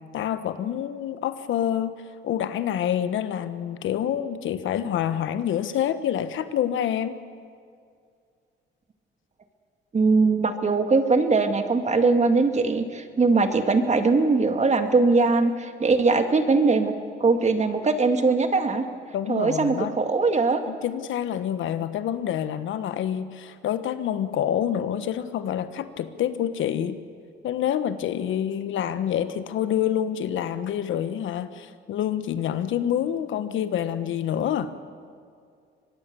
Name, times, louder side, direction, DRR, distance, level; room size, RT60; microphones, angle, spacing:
voice 1, 0.1-1.9 2.2-7.2 19.1-20.0 20.7-27.0 27.4-34.7, left 10 dB, 75° left, 12 dB, 1.3 m, -27 dB
voice 2, 9.9-16.9 17.2-18.8 19.3-20.6, right 3 dB, 35° right, 7 dB, 2.2 m, -21 dB
24.5 x 21.5 x 7.0 m, 2.2 s
cardioid pair, 90°, 20 cm